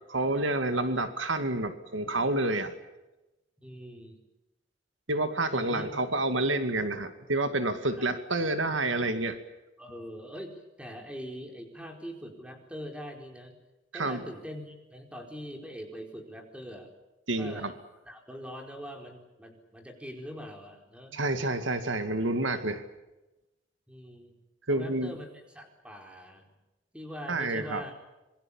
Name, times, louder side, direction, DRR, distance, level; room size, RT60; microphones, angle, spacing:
voice 1, 0.1-2.7 5.1-9.4 13.9-14.2 17.3-17.7 21.1-22.8 24.7-25.2 27.3-27.8, right 2 dB, 85° right, 9 dB, 2.2 m, -29 dB
voice 2, 3.6-4.2 5.5-5.9 8.0-8.1 8.4-8.5 9.8-13.5 13.9-16.9 17.4-17.8 18.0-21.2 23.9-24.4 24.7-26.5 26.9-28.0, equal, 5° right, 3 dB, 4.5 m, -43 dB
26.5 x 22.5 x 7.3 m, 1.0 s
head